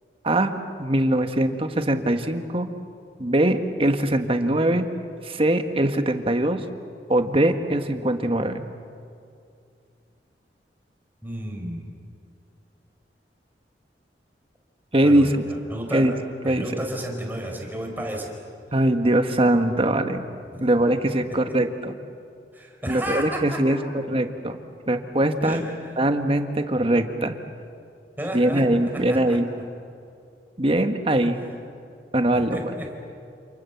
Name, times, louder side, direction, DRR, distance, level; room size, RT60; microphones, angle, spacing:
voice 1, 0.2-2.7 3.2-4.9 5.2-6.6 7.1-8.6 14.9-15.5 15.9-16.1 16.4-16.7 18.7-20.2 20.6-21.9 22.9-23.8 24.1-24.6 24.9-25.6 26.0-27.4 28.3-29.5 30.6-31.4 32.1-32.6, right 1 dB, 35° right, 7 dB, 1.6 m, -22 dB
voice 2, 11.2-11.9 15.0-16.1 16.4-18.3 20.5-20.7 22.5-23.9 25.4-25.9 28.2-28.6 28.9-29.4 32.3-32.9, right 1 dB, 10° right, 1 dB, 4.8 m, -32 dB
28.5 x 28.5 x 7.2 m, 2.4 s
head